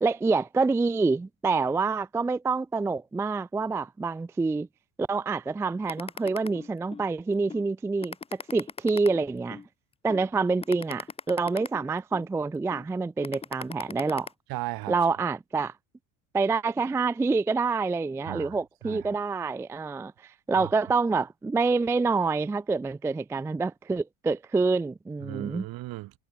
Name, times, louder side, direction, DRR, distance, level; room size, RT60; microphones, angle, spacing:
voice 1, 0.0-4.7 5.0-9.6 10.0-14.3 14.9-15.7 16.3-25.6, right 4 dB, 5° right, 0.3 m, -27 dB
sound 1, 5.9-7.1 7.5-7.6 8.0-9.7 10.1-10.2 10.6-12.3 12.7-12.9 13.2-14.3, left 5 dB, 15° left, 0.8 m, -38 dB
voice 2, 14.5-15.0 18.2-18.6 18.8-19.1 20.5-20.7 25.2-26.2, right 18 dB, 50° right, 1.0 m, -36 dB
cardioid pair, 135°, 44 cm